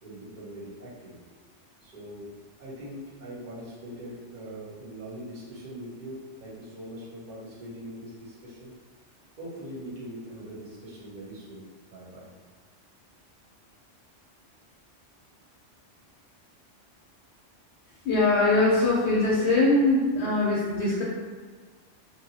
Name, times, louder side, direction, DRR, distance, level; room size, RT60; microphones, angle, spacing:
voice 1, 0.0-1.2 1.8-2.3 2.6-8.7 9.4-12.3, equal, 45° right, -7 dB, 0.9 m, -42 dB
voice 2, 18.0-21.0, left 2 dB, 70° left, -6 dB, 0.8 m, -22 dB
2.7 x 2.6 x 2.7 m, 1.5 s
omnidirectional pair, 1.2 m